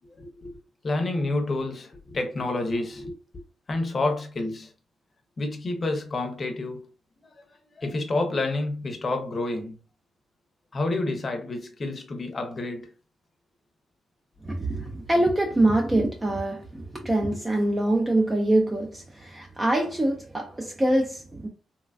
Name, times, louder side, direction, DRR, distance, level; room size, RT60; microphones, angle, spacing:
voice 1, 0.2-0.5 0.8-3.4 3.7-4.7 5.4-6.9 7.2-7.3 7.7-9.8 10.7-12.9, left 2 dB, 35° left, 0.7 m, -29 dB
voice 2, 14.4-16.6 16.9-21.5, right 1 dB, 20° right, 0.4 m, -24 dB
3.1 x 2.2 x 2.3 m
cardioid pair, 115°, 0 cm